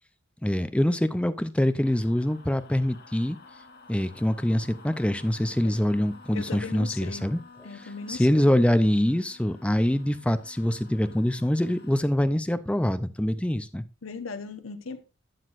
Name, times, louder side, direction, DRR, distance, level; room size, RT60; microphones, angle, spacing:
voice 1, 0.4-3.4 3.9-7.4 8.1-13.8, left 1 dB, 5° left, 0.5 m, -24 dB
sound 1, 1.8-12.1, left 3 dB, 50° left, 1.1 m, -52 dB
voice 2, 6.3-7.3 7.6-8.4 14.0-15.0, left 4 dB, 85° left, 1.0 m, -38 dB
12.0 x 8.1 x 2.5 m
head